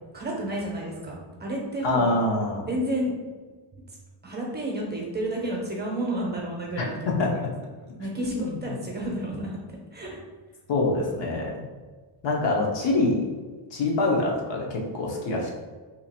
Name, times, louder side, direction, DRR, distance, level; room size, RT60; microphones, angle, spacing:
voice 1, 0.1-2.1 2.7-3.1 4.2-7.4 8.0-8.3 8.6-9.6 9.9-10.2, right 1 dB, 20° right, -2 dB, 0.7 m, -31 dB
voice 2, 1.8-2.7 6.8-7.5 8.2-8.5 10.7-11.7 12.2-13.2 13.7-15.6, left 2 dB, 70° left, -1 dB, 0.9 m, -25 dB
2.9 x 2.5 x 4.1 m, 1.4 s
cardioid pair, 135°, 45 cm